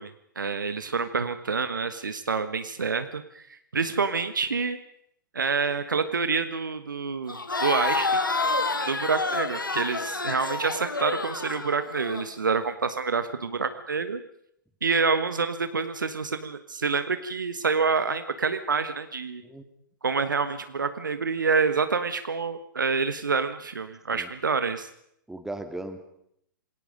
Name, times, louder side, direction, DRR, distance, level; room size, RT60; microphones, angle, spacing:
voice 1, 0.0-4.8 5.3-8.1 8.9-14.2 14.8-19.4 20.0-24.9, right 5 dB, 70° right, 10 dB, 1.5 m, -27 dB
Crowd, 7.3-12.3, left 3 dB, 80° left, 2.2 m, -28 dB
voice 2, 25.3-26.1, right 2 dB, 5° right, 8 dB, 2.3 m, -37 dB
27.5 x 21.0 x 5.2 m, 0.74 s
figure-of-eight pair, 110°, 11 cm